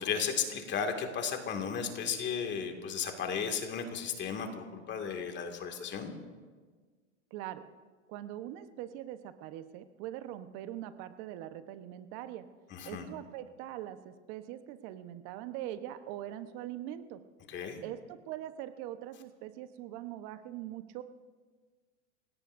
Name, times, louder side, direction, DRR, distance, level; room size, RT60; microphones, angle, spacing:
voice 1, 0.0-6.1 12.7-13.0 17.5-17.8, left 6 dB, 30° left, 4 dB, 2.3 m, -34 dB
voice 2, 7.3-7.7 8.1-12.5 12.9-17.2 17.8-21.0, right 12 dB, 45° right, 10 dB, 1.1 m, -42 dB
28.5 x 17.5 x 2.7 m, 1.5 s
hypercardioid pair, 115°, 36 cm